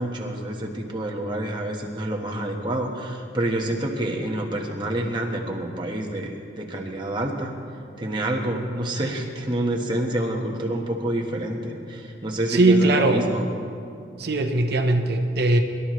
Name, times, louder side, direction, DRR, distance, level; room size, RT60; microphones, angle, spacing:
voice 1, 0.0-7.5 8.0-13.4, right 1 dB, 25° right, 0 dB, 1.3 m, -28 dB
voice 2, 12.5-13.2 14.2-15.6, right 2 dB, 55° right, 5 dB, 0.9 m, -20 dB
22.0 x 12.5 x 3.2 m, 2.5 s
head